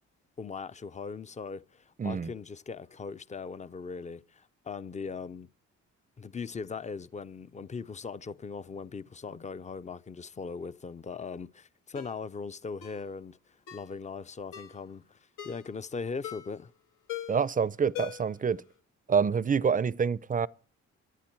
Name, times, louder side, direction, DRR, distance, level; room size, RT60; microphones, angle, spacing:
voice 1, 0.4-5.5 6.2-15.2 15.4-16.7, left 5 dB, 25° left, 0.6 m, -39 dB
voice 2, 2.0-2.3 17.3-18.6 19.1-20.5, right 6 dB, 25° right, 0.6 m, -27 dB
Ringtone, 11.9-12.2 12.8-13.0 13.7-13.9 14.5-14.8 15.4-15.7 16.2-16.6 17.1-17.5 17.9-18.4 18.7-18.8, left 11 dB, 85° left, 2.3 m, -41 dB
17.5 x 11.5 x 4.6 m
cardioid pair, 90°, 30 cm